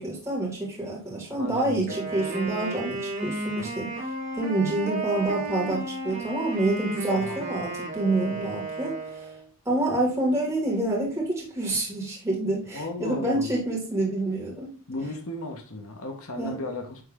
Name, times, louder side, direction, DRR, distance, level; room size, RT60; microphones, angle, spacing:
voice 1, 0.0-4.1 4.4-9.3 9.7-14.7 16.4-16.6, right 2 dB, 15° right, -4 dB, 2.4 m, -27 dB
voice 2, 1.3-2.0 3.6-3.8 7.1-7.4 8.3-8.5 12.7-13.5 14.9-17.0, left 2 dB, 85° left, 3 dB, 1.4 m, -35 dB
Wind instrument woodwind instrument, 1.9-9.5, right 2 dB, 50° right, 3.9 m, -33 dB
10.5 x 3.6 x 3.7 m, 0.36 s
head